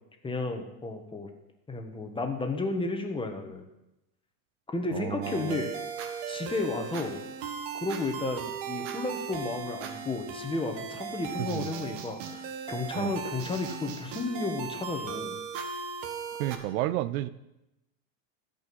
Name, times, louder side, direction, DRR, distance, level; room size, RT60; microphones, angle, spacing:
voice 1, 0.2-1.3 1.7-3.7 4.7-5.8 6.3-7.2 7.8-15.4, left 3 dB, 10° left, 4 dB, 1.5 m, -33 dB
voice 2, 4.9-5.6 11.5-11.7 12.9-13.1 16.4-17.3, right 14 dB, 80° right, 16 dB, 0.8 m, -31 dB
sound 1, 5.2-16.6, right 6 dB, 65° right, 1.6 m, -37 dB
13.5 x 5.4 x 8.5 m, 0.92 s
supercardioid pair, 130°, 43 cm